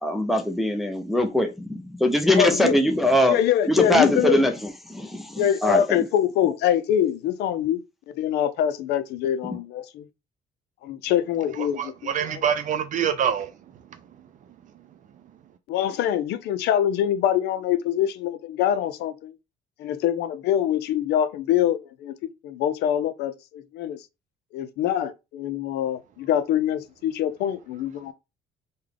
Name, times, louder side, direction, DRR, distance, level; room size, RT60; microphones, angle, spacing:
voice 1, 0.0-3.4 3.7-4.5 4.9-5.8, left 1 dB, ahead, 0.6 m, -22 dB
voice 2, 2.3-2.8 3.3-4.4 5.4-7.8 8.1-10.0 10.8-12.4 15.7-19.3 19.8-24.0 24.5-28.1, left 10 dB, 80° left, 0.5 m, -24 dB
voice 3, 11.6-13.5, right 8 dB, 50° right, 0.4 m, -25 dB
3.6 x 2.3 x 3.4 m
cardioid pair, 110°, 17 cm